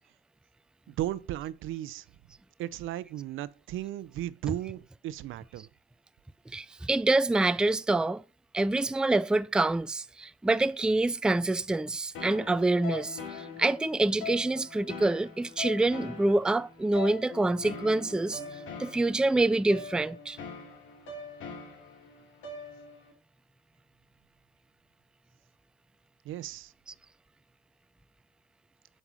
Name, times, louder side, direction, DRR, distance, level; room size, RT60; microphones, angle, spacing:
voice 1, 0.9-2.1 2.6-5.7 26.2-26.7, right 13 dB, 85° right, 0.6 m, -35 dB
voice 2, 6.5-8.2 8.5-18.4 18.8-20.4 26.9-27.0, right 2 dB, 5° right, 0.4 m, -26 dB
sound 1, 12.1-23.1, left 4 dB, 90° left, 3.1 m, -42 dB
7.3 x 5.5 x 5.0 m
cardioid pair, 90°, 20 cm